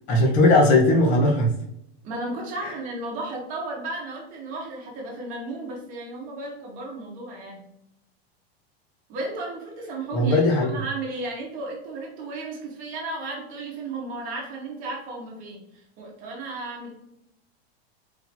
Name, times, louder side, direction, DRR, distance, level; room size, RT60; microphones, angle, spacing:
voice 1, 0.1-1.5 2.6-2.7 10.1-10.8, left 2 dB, 25° left, 0 dB, 0.9 m, -18 dB
voice 2, 2.0-7.7 9.1-15.6 16.0-16.9, right 2 dB, 25° right, -2 dB, 1.3 m, -34 dB
4.3 x 2.8 x 4.3 m, 0.79 s
supercardioid pair, 165°, 31 cm